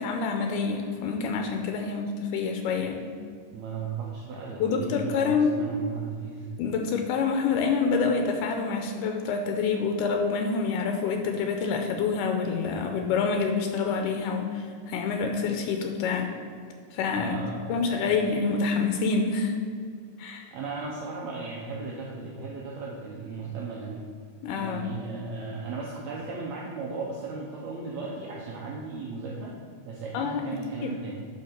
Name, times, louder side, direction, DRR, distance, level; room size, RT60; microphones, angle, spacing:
voice 1, 0.0-3.0 4.6-5.6 6.6-16.3 16.9-17.4 17.7-19.5 20.2-20.5 24.4-24.9 30.1-30.4 30.8-31.0, left 5 dB, 85° left, 4 dB, 2.2 m, -27 dB
voice 2, 3.5-6.5 17.1-18.1 20.5-24.1 24.6-29.6 29.8-31.2, right 4 dB, 70° right, -3 dB, 1.8 m, -36 dB
11.5 x 4.6 x 4.4 m, 2.1 s
omnidirectional pair, 3.7 m